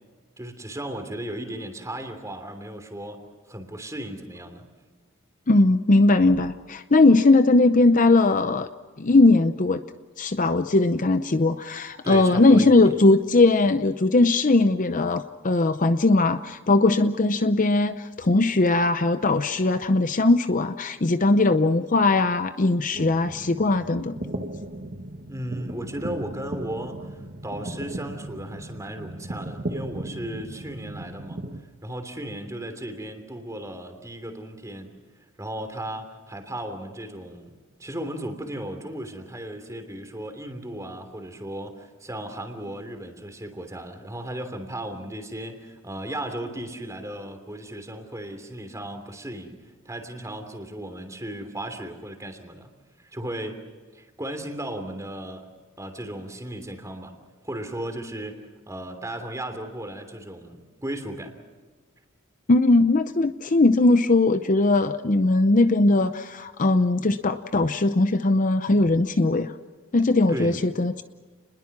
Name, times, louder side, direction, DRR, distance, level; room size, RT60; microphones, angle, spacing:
voice 1, 0.4-3.2 3.5-4.7 12.0-12.9 25.3-31.4 31.8-34.9 35.4-37.5 37.8-49.5 49.8-52.7 53.0-53.7 53.9-55.5 55.8-57.1 57.4-61.3 70.3-70.6, right 1 dB, 15° right, 6 dB, 3.0 m, -35 dB
voice 2, 5.5-8.7 9.0-9.8 10.2-24.2 62.5-69.5 69.9-71.0, left 2 dB, 40° left, 10 dB, 0.7 m, -19 dB
sound 1, 22.9-31.6, right 1 dB, 45° right, 1.4 m, -36 dB
29.5 x 21.5 x 6.1 m, 1.4 s
head